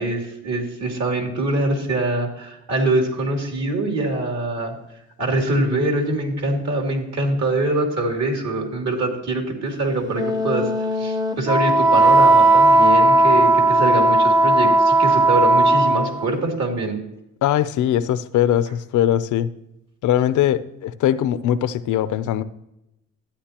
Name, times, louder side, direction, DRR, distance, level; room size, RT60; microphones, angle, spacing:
voice 1, 0.0-4.7 5.2-17.0, right 2 dB, 60° right, 2 dB, 2.8 m, -24 dB
Wind instrument woodwind instrument, 10.1-16.3, right 2 dB, 15° right, 0.7 m, -16 dB
voice 2, 17.4-19.5 20.0-22.4, left 11 dB, 75° left, 14 dB, 0.6 m, -20 dB
13.0 x 9.5 x 2.9 m, 0.86 s
cardioid pair, 90°, 30 cm